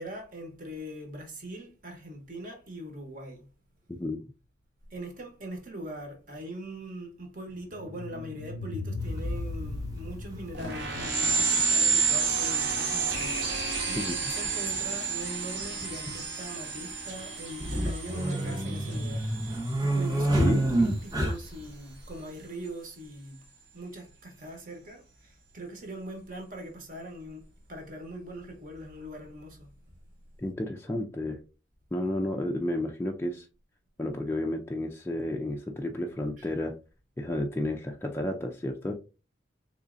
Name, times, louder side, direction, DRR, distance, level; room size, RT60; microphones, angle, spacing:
voice 1, 0.0-3.5 4.9-19.3 19.8-23.4 23.7-29.7 36.4-36.5, right 1 dB, 45° right, 1.0 m, -41 dB
sound 1, 7.5-12.6, left 2 dB, 90° left, 0.4 m, -38 dB
sound 2, 9.1-9.2 10.7-10.8 12.2-12.3 12.5-12.6 14.4-14.6 14.8-14.9 15.6-16.1 17.5-21.7, right 1 dB, 20° right, 0.8 m, -27 dB
sound 3, 10.5-20.7, right 5 dB, 80° right, 1.3 m, -30 dB
voice 2, 30.4-31.4 31.9-33.5 34.0-36.7 37.2-38.9, left 1 dB, 15° left, 0.3 m, -31 dB
3.8 x 3.1 x 2.5 m
head